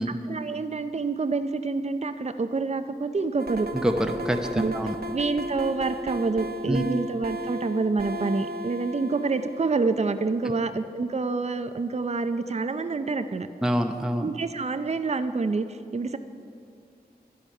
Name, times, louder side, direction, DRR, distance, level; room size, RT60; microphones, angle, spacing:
voice 1, 0.3-3.7 4.5-4.7 5.1-13.5 14.2-16.2, right 3 dB, 40° right, 10 dB, 0.5 m, -27 dB
sound 1, 3.4-10.3, equal, 70° right, 0.9 m, -35 dB
voice 2, 3.7-5.0 6.7-6.8 13.6-14.3, equal, 5° right, 4 dB, 0.8 m, -26 dB
11.5 x 10.0 x 5.4 m, 2.5 s
wide cardioid pair, 55°, 17 cm